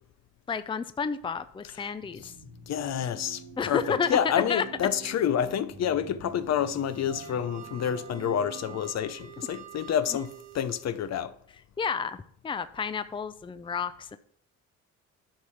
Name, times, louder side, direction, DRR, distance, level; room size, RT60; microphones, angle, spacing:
voice 1, 0.5-2.3 3.6-4.6 9.5-9.6 11.8-14.2, left 6 dB, 15° left, 0.5 m, -31 dB
sound 1, 2.0-8.8, right 5 dB, 75° right, 1.8 m, -46 dB
voice 2, 2.7-11.3, left 9 dB, 60° left, 0.7 m, -29 dB
sound 2, 6.3-11.2, right 15 dB, 60° right, 1.1 m, -48 dB
10.5 x 4.9 x 5.7 m
cardioid pair, 90°, 30 cm